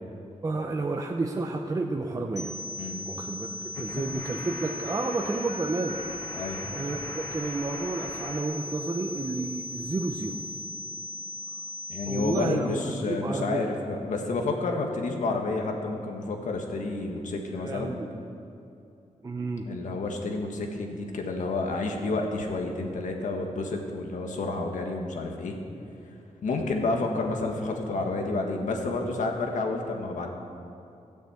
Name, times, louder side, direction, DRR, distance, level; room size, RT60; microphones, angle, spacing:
voice 1, 0.4-2.5 3.1-3.5 3.8-6.0 6.7-10.4 12.1-13.7 17.6-18.1 19.2-19.7, right 3 dB, 25° right, 1 dB, 0.7 m, -31 dB
sound 1, 2.4-12.4, left 2 dB, 65° left, 1.2 m, -38 dB
voice 2, 2.8-3.1 6.3-6.8 11.9-17.9 19.7-25.6 26.4-30.3, left 3 dB, 80° left, 2 dB, 1.6 m, -30 dB
sound 2, 3.7-8.4 8.6-10.6, left 1 dB, 30° left, 3.2 m, -43 dB
16.0 x 6.5 x 8.3 m, 2.7 s
wide cardioid pair, 175°, 13 cm